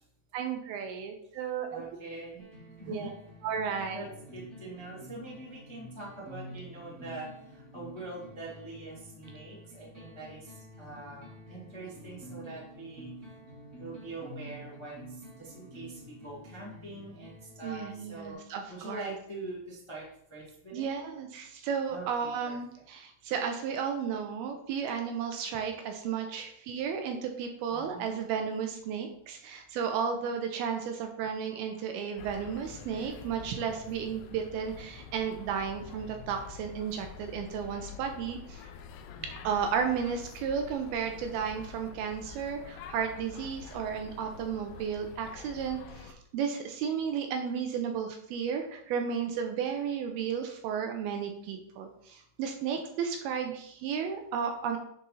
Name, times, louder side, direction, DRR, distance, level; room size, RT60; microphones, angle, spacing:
voice 1, 0.3-1.8 2.9-3.1 3.4-4.1 17.6-19.0 20.7-38.6 39.4-54.8, right 7 dB, 80° right, 4 dB, 2.4 m, -33 dB
voice 2, 1.7-2.4 2.8-3.1 3.9-4.1 4.3-7.3 7.5-10.5 10.8-13.1 13.8-15.1 15.4-18.4 18.7-20.0 20.3-21.0 21.9-22.8 27.7-28.2 39.1-39.6, right 2 dB, 15° left, -6 dB, 1.1 m, -44 dB
sound 1, 2.4-18.3, equal, 30° right, 1.3 m, -49 dB
sound 2, 32.2-46.1, left 7 dB, 80° left, 2.2 m, -47 dB
10.0 x 4.3 x 4.0 m, 0.71 s
omnidirectional pair, 4.7 m